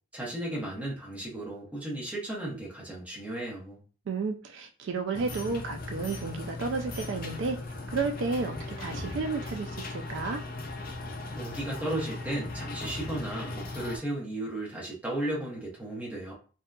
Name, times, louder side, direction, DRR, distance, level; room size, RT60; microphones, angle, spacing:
voice 1, 0.1-3.8 11.4-16.3, right 1 dB, 10° right, -5 dB, 0.9 m, -35 dB
voice 2, 4.1-7.6 7.9-10.4, right 4 dB, 70° right, 6 dB, 0.3 m, -32 dB
sound 1, 5.1-14.0, left 2 dB, 50° left, 0.5 m, -38 dB
2.7 x 2.2 x 2.3 m, 0.37 s
head